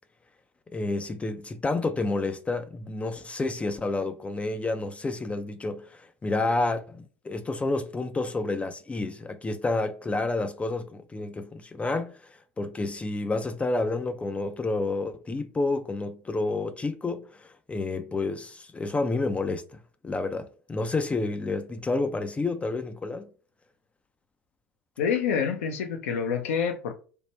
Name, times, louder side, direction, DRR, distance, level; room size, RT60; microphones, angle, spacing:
voice 1, 0.7-19.8 20.0-23.3, left 3 dB, 15° left, 0.4 m, -30 dB
voice 2, 25.0-26.9, left 7 dB, 80° left, 0.7 m, -27 dB
3.5 x 2.1 x 4.2 m
hypercardioid pair, 80°, 7 cm